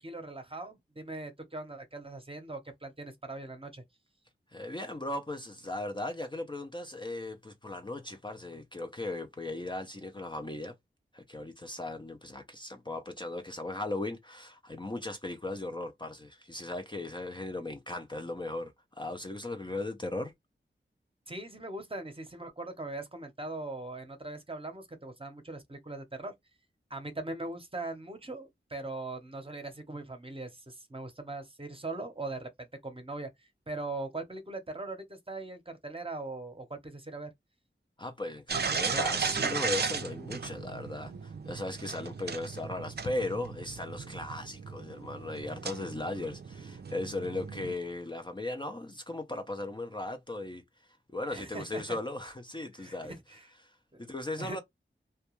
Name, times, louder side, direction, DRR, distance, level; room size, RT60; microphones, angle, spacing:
voice 1, 0.0-3.8 21.3-26.3 26.9-33.3 33.7-37.3 51.3-52.0 52.8-53.5 53.9-54.0 54.4-54.6, right 2 dB, 25° right, 0.8 m, -40 dB
voice 2, 4.5-10.7 11.1-20.3 38.0-50.6 51.1-53.2 53.6-53.7 54.0-54.6, left 2 dB, 25° left, 0.4 m, -37 dB
sound 1, 38.5-47.7, right 5 dB, 55° right, 0.4 m, -36 dB
2.3 x 2.2 x 2.9 m
wide cardioid pair, 55°, 21 cm